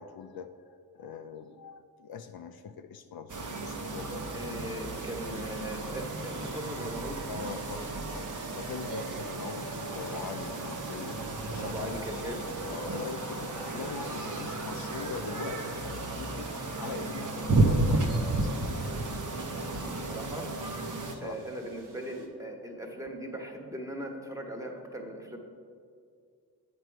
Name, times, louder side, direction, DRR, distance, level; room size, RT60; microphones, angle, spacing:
voice 1, 0.0-4.3 7.3-8.3 8.6-11.2 11.4-11.7 12.7-18.9 21.1-21.3, left 6 dB, 65° left, 7 dB, 0.5 m, -42 dB
sound 1, 3.3-21.2, right 2 dB, 50° right, 0.9 m, -33 dB
voice 2, 4.3-7.2 7.7-7.9 11.6-12.4 19.9-20.5 21.2-25.4, equal, 10° right, 1 dB, 1.3 m, -39 dB
sound 2, 4.6-22.3, right 3 dB, 85° right, 1.0 m, -48 dB
7.7 x 5.3 x 4.6 m, 2.2 s
cardioid pair, 50°, 40 cm